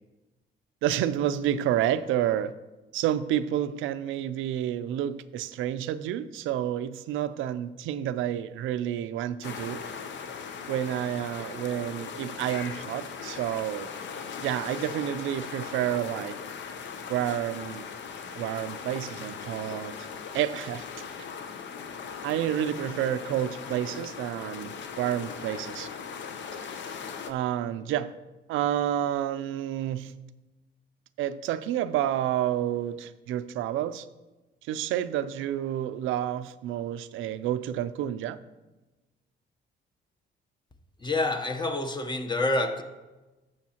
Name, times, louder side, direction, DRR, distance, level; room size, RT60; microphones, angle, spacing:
voice 1, 0.8-2.5 2.9-9.8 10.7-13.9 14.4-16.4 17.1-17.9 18.4-19.9 20.3-20.8 22.2-25.9 27.3-28.1 28.5-30.1 31.2-34.1 34.7-38.4, right 11 dB, 90° right, 0.4 m, -29 dB
sound 1, 9.4-27.3, left 6 dB, 65° left, 0.8 m, -39 dB
voice 2, 41.0-42.8, left 2 dB, 20° left, 0.8 m, -27 dB
12.0 x 6.4 x 2.9 m
cardioid pair, 90°, 20 cm